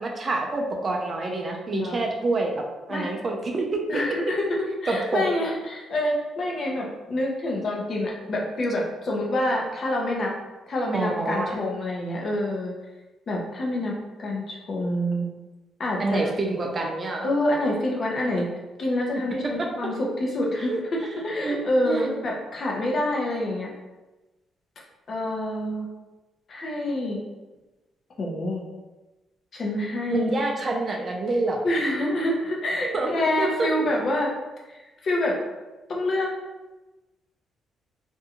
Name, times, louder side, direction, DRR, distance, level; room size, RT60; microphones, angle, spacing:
voice 1, 0.0-2.5 2.9-3.8 4.9-5.2 10.9-11.6 16.0-17.3 20.6-20.8 21.4-21.6 21.9-22.2 30.1-31.6 32.9-33.7, right 2 dB, 35° right, 1 dB, 0.4 m, -27 dB
voice 2, 3.9-10.3 10.7-12.7 13.3-15.3 15.8-16.3 17.2-18.5 18.8-20.7 21.2-23.7 25.1-25.9 26.5-27.2 28.2-28.6 29.5-30.3 31.6-34.3 35.0-35.4 35.9-36.3, left 1 dB, 50° left, -2 dB, 0.7 m, -27 dB
2.6 x 2.2 x 2.8 m, 1.1 s
cardioid pair, 100°, 0 cm